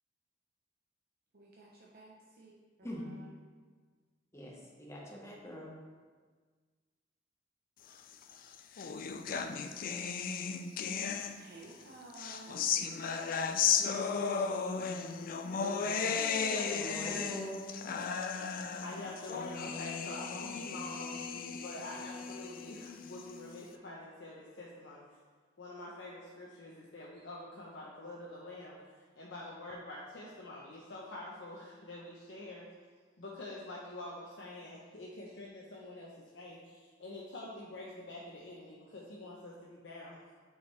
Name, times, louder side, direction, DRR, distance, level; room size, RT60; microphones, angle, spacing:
voice 1, 1.3-2.5 2.8-3.3 11.4-12.6 13.7-15.1 20.9-21.0, right 2 dB, 55° right, 0.7 m, -54 dB
voice 2, 2.8-3.2 4.3-5.8 16.7-17.7, equal, 15° left, 1.1 m, -43 dB
sound 1, 8.2-11.7 12.1-23.6, left 6 dB, 50° left, 0.4 m, -35 dB
voice 3, 15.5-17.3 18.8-21.2 21.5-25.0 25.6-32.6 33.2-40.2, left 2 dB, 80° left, 0.8 m, -46 dB
8.0 x 4.9 x 3.2 m
head